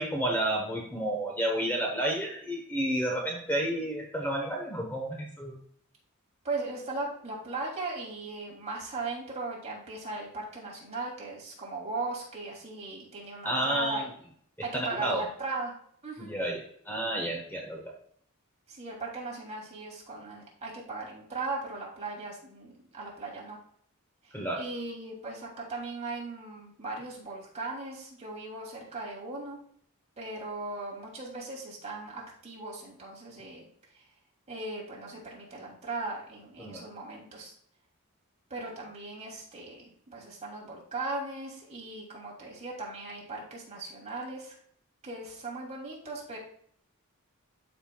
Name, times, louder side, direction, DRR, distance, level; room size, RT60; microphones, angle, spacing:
voice 1, 0.0-5.6 13.4-14.1 14.6-15.2 16.2-17.9 24.3-24.6 36.6-36.8, right 1 dB, 10° left, 0 dB, 1.0 m, -31 dB
voice 2, 6.4-14.1 14.6-15.7 16.0-16.3 18.7-23.6 24.2-29.6 30.2-33.7 33.9-34.0 34.5-37.5 38.5-44.5 45.0-46.4, right 3 dB, 30° right, -3 dB, 2.7 m, -38 dB
12.0 x 5.6 x 2.3 m, 0.63 s
head